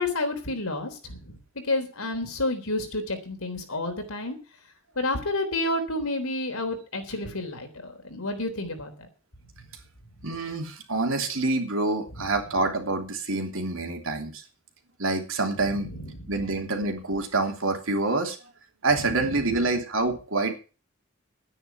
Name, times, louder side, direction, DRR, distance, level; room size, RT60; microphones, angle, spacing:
voice 1, 0.0-1.4 1.6-4.4 5.0-9.1 12.1-12.3 15.6-16.3 19.0-19.4, left 2 dB, 85° left, 6 dB, 3.6 m, -30 dB
voice 2, 10.2-14.4 15.0-15.9 16.3-18.4 18.8-20.5, right 2 dB, 65° right, 3 dB, 3.2 m, -26 dB
11.0 x 9.7 x 7.1 m, 0.35 s
head